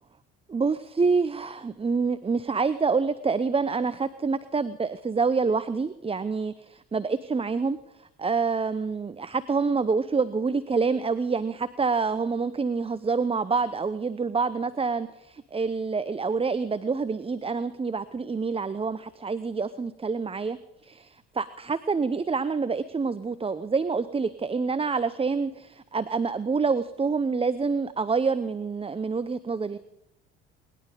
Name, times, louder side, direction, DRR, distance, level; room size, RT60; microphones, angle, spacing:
voice 1, 0.5-7.8 8.2-20.6 20.8-29.8, right 4 dB, 20° right, 14 dB, 0.7 m, -27 dB
21.5 x 11.5 x 5.2 m, 0.84 s
hypercardioid pair, 65°, 29 cm